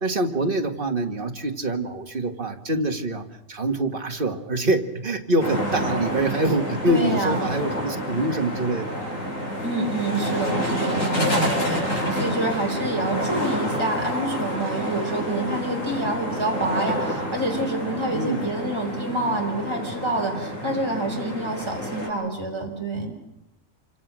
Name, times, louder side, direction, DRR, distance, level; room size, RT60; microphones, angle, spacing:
voice 1, 0.0-9.2 18.1-18.5, right 2 dB, 45° right, 4 dB, 2.1 m, -25 dB
sound 1, 5.4-22.1, equal, 85° left, 7.2 m, -28 dB
voice 2, 6.9-7.4 9.6-23.1, right 2 dB, 20° right, 1 dB, 4.4 m, -27 dB
28.0 x 25.5 x 6.3 m, 0.89 s
omnidirectional pair, 1.3 m